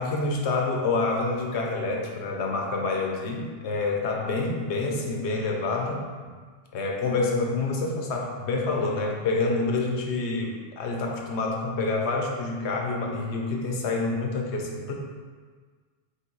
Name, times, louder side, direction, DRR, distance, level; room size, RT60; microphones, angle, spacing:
voice 1, 0.0-6.1 6.7-14.9, left 3 dB, 70° left, 0 dB, 0.9 m, -27 dB
5.2 x 2.2 x 3.8 m, 1.5 s
omnidirectional pair, 1.2 m